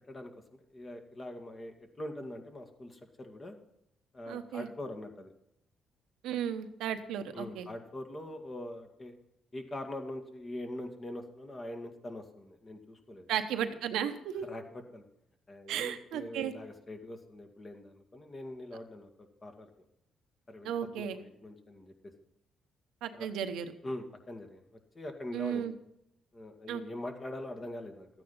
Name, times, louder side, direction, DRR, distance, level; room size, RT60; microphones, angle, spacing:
voice 1, 0.7-3.6 4.1-5.3 7.3-9.1 9.5-13.3 14.4-14.6 14.9-15.0 15.5-19.1 19.4-19.7 20.5-22.1 23.1-23.3 23.8-24.6 25.0-25.7 26.3-28.1, left 1 dB, 30° left, 4 dB, 2.0 m, -43 dB
voice 2, 4.3-4.7 6.2-7.7 13.3-14.4 15.7-16.5 20.6-21.2 23.0-23.7 25.3-25.7 26.7-26.8, right 9 dB, 85° right, 7 dB, 1.0 m, -34 dB
13.5 x 9.1 x 5.5 m, 0.79 s
cardioid pair, 90°, 0 cm